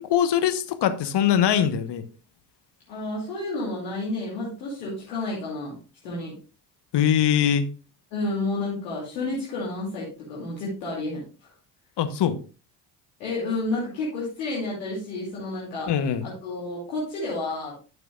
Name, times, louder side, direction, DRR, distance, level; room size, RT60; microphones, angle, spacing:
voice 1, 0.0-2.0 6.9-7.7 12.0-12.4 15.9-16.3, left 9 dB, 55° left, 11 dB, 1.3 m, -22 dB
voice 2, 2.9-5.8 6.0-6.4 8.1-11.5 13.2-15.9 16.2-17.8, left 2 dB, 85° left, -6 dB, 2.7 m, -30 dB
12.5 x 6.7 x 2.5 m, 0.35 s
hypercardioid pair, 45°, 50 cm